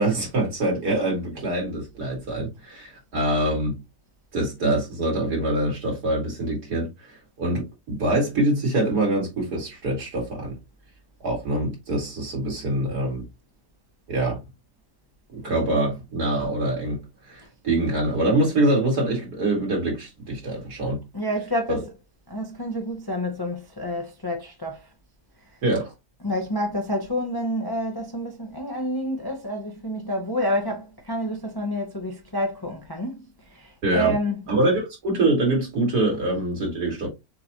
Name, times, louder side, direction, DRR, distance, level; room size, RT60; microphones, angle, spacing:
voice 1, 0.0-3.8 4.3-10.6 11.2-13.2 14.1-14.4 15.3-21.0 21.7-21.8 25.6-25.9 33.8-34.2 34.5-37.1, right 1 dB, 70° right, 3.1 m, -24 dB
voice 2, 21.1-21.9 22.3-24.9 26.2-34.4, equal, 25° left, 0.6 m, -28 dB
6.6 x 2.6 x 2.9 m
omnidirectional pair, 1.7 m